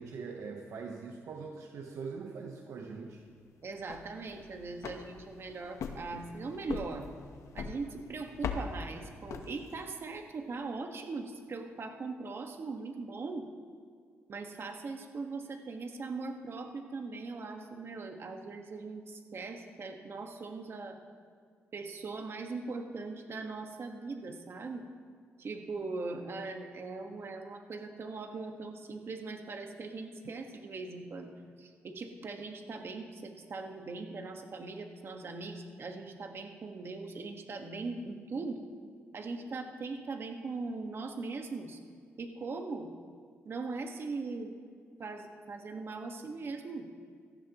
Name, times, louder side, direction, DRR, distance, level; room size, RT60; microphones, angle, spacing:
voice 1, 0.0-3.2, right 5 dB, 75° right, 2 dB, 1.0 m, -42 dB
voice 2, 3.6-7.1 7.5-13.4 14.3-21.0 21.7-24.8 25.4-38.6 39.1-41.8 42.2-42.9 43.4-44.5 45.0-46.9, right 3 dB, 50° right, 4 dB, 1.6 m, -40 dB
sound 1, 3.7-10.0, left 5 dB, 80° left, 1.0 m, -42 dB
17.5 x 14.0 x 3.1 m, 2.1 s
cardioid pair, 75°, 5 cm